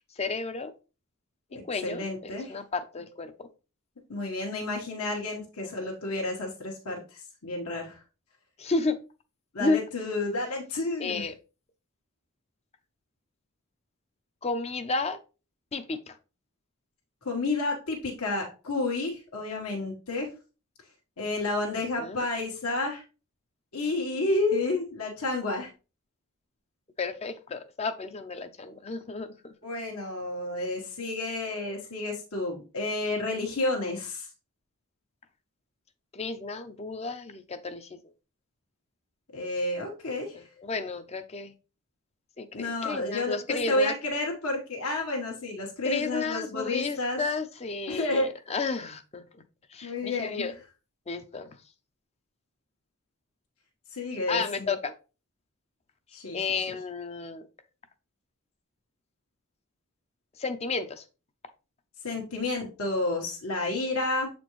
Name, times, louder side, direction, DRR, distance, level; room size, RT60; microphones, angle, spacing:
voice 1, 0.2-0.7 1.7-3.5 8.6-9.0 9.6-9.8 11.0-11.3 14.4-15.2 15.7-16.2 22.0-22.2 27.0-29.5 36.1-38.0 40.3-41.5 42.4-44.0 45.8-49.2 49.7-50.5 51.1-51.6 54.3-54.9 56.3-57.5 60.4-61.0, left 4 dB, 30° left, 10 dB, 0.5 m, -32 dB
voice 2, 1.5-2.6 4.1-8.0 9.5-11.3 17.2-20.3 21.2-23.0 23.7-25.7 29.6-34.3 39.3-40.4 42.5-47.2 47.9-48.3 49.8-50.5 53.9-54.8 56.1-56.7 62.0-64.3, left 2 dB, 80° left, 0 dB, 1.3 m, -30 dB
7.5 x 4.2 x 3.0 m, 0.32 s
head